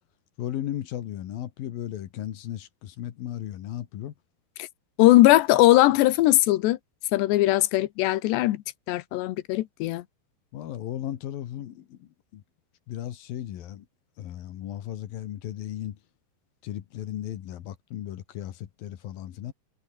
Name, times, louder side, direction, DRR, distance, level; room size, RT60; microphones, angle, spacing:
voice 1, 0.4-4.1 10.5-12.4 12.9-13.8 14.2-16.0 16.6-19.5, left 12 dB, 65° left, 3.0 m, -35 dB
voice 2, 5.0-6.8 7.1-8.6 8.9-10.0, left 17 dB, 85° left, 3.2 m, -20 dB
omnidirectional pair, 5.0 m